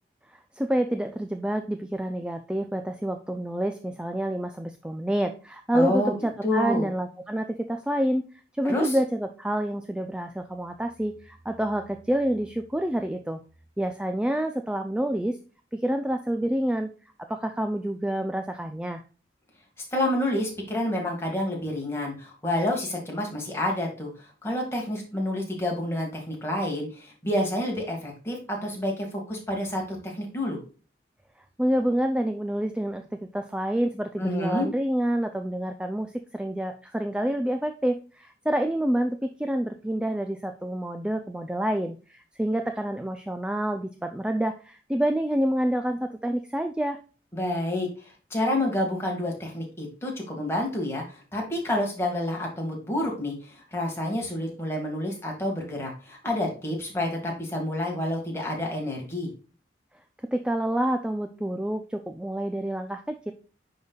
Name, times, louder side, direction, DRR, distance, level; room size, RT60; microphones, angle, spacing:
voice 1, 0.3-13.4 13.8-15.4 15.7-16.9 17.3-19.0 31.6-47.0 60.3-63.3, right 1 dB, 5° right, 6 dB, 0.3 m, -28 dB
voice 2, 5.7-6.1 6.4-6.9 8.6-9.0 19.9-30.6 34.2-34.7 47.3-47.9 48.3-59.3, left 1 dB, 15° left, -1 dB, 1.8 m, -29 dB
10.5 x 4.0 x 2.3 m, 0.37 s
head